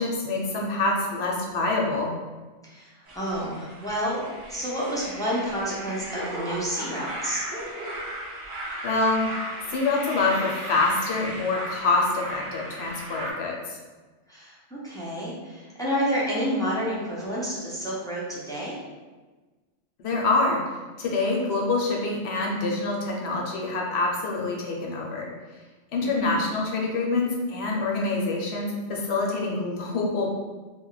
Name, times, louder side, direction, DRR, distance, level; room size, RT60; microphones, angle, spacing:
voice 1, 0.0-2.1 8.8-9.2 9.7-13.8 20.0-20.6 21.0-25.3 25.9-30.3, left 3 dB, 65° left, -1 dB, 0.8 m, -26 dB
voice 2, 2.6-7.4 14.3-18.8 26.0-26.3, equal, 5° left, -8 dB, 0.3 m, -29 dB
sound 1, 3.1-13.3, right 1 dB, 55° right, 0.8 m, -36 dB
2.2 x 2.1 x 3.8 m, 1.3 s
omnidirectional pair, 1.2 m